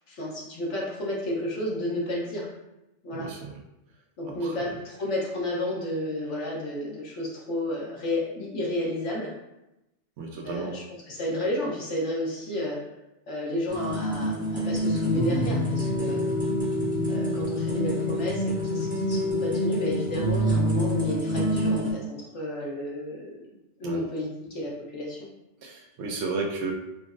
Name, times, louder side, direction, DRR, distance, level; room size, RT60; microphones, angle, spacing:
voice 1, 0.0-2.5 3.0-3.3 4.2-9.3 10.4-12.8 13.3-16.2 17.1-25.3, left 1 dB, 75° left, -4 dB, 1.2 m, -32 dB
voice 2, 3.1-3.6 4.4-4.5 10.2-10.8 23.8-24.0 25.6-26.7, right 4 dB, 70° right, 0 dB, 0.9 m, -33 dB
sound 1, 13.7-21.9, equal, 10° right, 0.6 m, -26 dB
4.8 x 2.0 x 2.5 m, 0.93 s
omnidirectional pair, 1.2 m